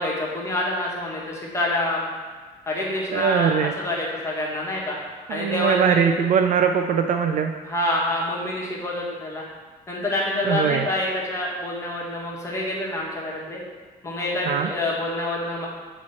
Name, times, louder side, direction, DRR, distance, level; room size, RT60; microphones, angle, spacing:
voice 1, 0.0-2.1 2.7-5.0 5.3-6.0 7.6-9.4 9.9-13.6 14.0-15.7, left 1 dB, 15° left, -4 dB, 1.4 m, -27 dB
voice 2, 3.1-3.7 5.3-7.5 10.5-10.9 14.4-14.7, right 7 dB, 50° right, 6 dB, 0.4 m, -21 dB
7.3 x 3.0 x 4.2 m, 1.4 s
cardioid pair, 110°, 17 cm